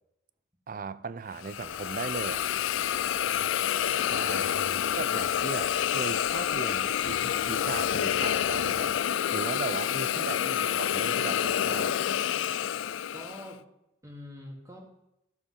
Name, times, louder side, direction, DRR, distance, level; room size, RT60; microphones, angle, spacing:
voice 1, 0.7-2.4 4.0-4.6 4.9-8.9 9.3-12.0, right 4 dB, 45° right, 0.4 m, -37 dB
Hiss, 1.4-13.5, left 10 dB, 85° left, 0.4 m, -28 dB
sound 1, 1.5-9.0, right 1 dB, 85° right, 2.5 m, -57 dB
voice 2, 4.4-4.9 10.4-10.8 13.1-13.6 14.0-14.9, left 1 dB, 15° right, 1.4 m, -45 dB
sound 2, 7.0-9.0, left 2 dB, 30° left, 0.6 m, -48 dB
12.0 x 7.0 x 5.5 m
head